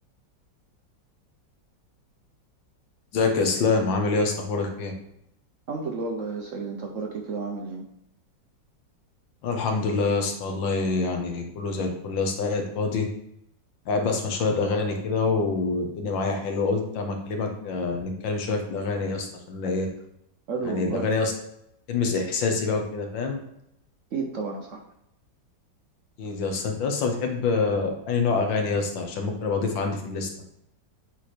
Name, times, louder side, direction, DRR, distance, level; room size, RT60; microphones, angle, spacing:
voice 1, 3.1-4.9 9.4-13.1 13.9-19.9 20.7-21.3 21.9-23.4 26.2-30.3, left 4 dB, 90° left, 4 dB, 1.8 m, -26 dB
voice 2, 5.7-7.9 20.5-21.1 24.1-24.8, right 4 dB, 60° right, 2 dB, 0.9 m, -31 dB
7.9 x 3.2 x 4.3 m, 0.78 s
omnidirectional pair, 2.0 m